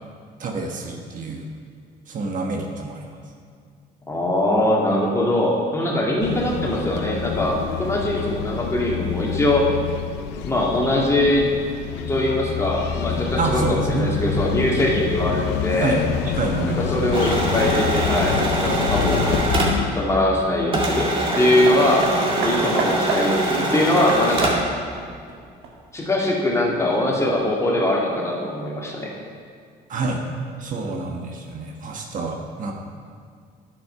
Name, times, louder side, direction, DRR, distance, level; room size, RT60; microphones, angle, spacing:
voice 1, 0.4-1.5 2.1-3.0 13.4-14.1 15.8-17.5 29.9-30.2 30.6-32.7, right 3 dB, 50° right, 1 dB, 1.3 m, -27 dB
voice 2, 4.1-9.6 10.4-11.5 12.1-16.0 16.7-19.4 19.8-21.1 21.3-22.1 22.4-24.6 25.9-29.1, left 1 dB, 15° left, -3 dB, 2.2 m, -22 dB
sound 1, 6.2-19.9, left 8 dB, 90° left, 0.7 m, -27 dB
sound 2, 17.1-20.4 20.7-24.7, right 1 dB, 30° right, 2.2 m, -24 dB
Hammer, 21.3-26.1 26.9-27.0, right 3 dB, 85° right, 1.8 m, -30 dB
10.5 x 7.7 x 5.8 m, 2.1 s
cardioid pair, 110°, 17 cm